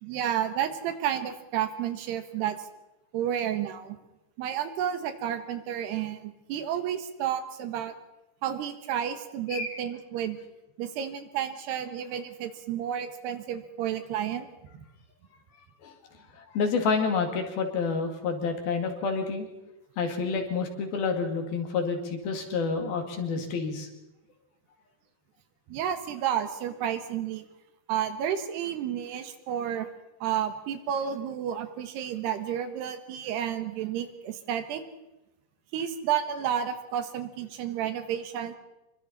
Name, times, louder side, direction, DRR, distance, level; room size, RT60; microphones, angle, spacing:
voice 1, 0.0-2.6 3.1-4.0 4.4-7.9 8.4-10.4 10.8-14.5 25.7-27.5 27.9-29.9 30.2-34.8 35.7-38.5, right 9 dB, 80° right, 9 dB, 3.5 m, -31 dB
voice 2, 16.3-19.5 20.0-23.9, left 4 dB, 65° left, 4 dB, 4.1 m, -29 dB
26.0 x 23.5 x 4.3 m, 0.95 s
omnidirectional pair, 4.7 m